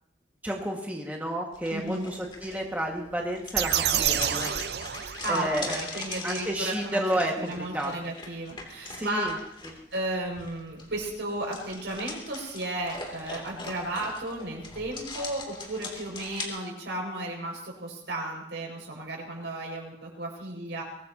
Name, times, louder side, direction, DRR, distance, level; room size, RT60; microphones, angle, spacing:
voice 1, 0.4-4.5 5.3-7.9 9.0-9.3, right 1 dB, 10° right, -1 dB, 1.8 m, -31 dB
sound 1, 1.5-16.5, left 3 dB, 25° left, 2.9 m, -41 dB
voice 2, 1.7-2.1 5.2-7.0 7.4-9.3 9.9-20.8, right 1 dB, 80° right, 0 dB, 6.1 m, -34 dB
sound 2, 3.5-5.7, right 10 dB, 60° right, 0.6 m, -28 dB
23.5 x 19.5 x 2.9 m, 0.77 s
head